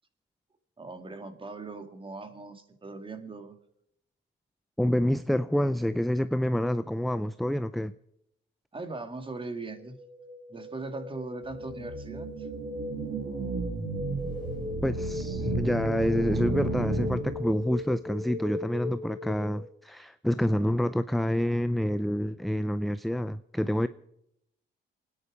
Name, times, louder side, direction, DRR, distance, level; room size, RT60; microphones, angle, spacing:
voice 1, 0.8-3.6 8.7-10.0 10.5-12.5, right 3 dB, 25° right, 2.2 m, -40 dB
voice 2, 4.8-7.9 14.8-23.9, equal, ahead, 0.5 m, -27 dB
sound 1, 9.8-19.7, left 3 dB, 40° right, 6.1 m, -38 dB
sound 2, 11.5-17.8, right 4 dB, 65° right, 2.7 m, -34 dB
27.5 x 10.0 x 4.9 m
cardioid pair, 90°, 20 cm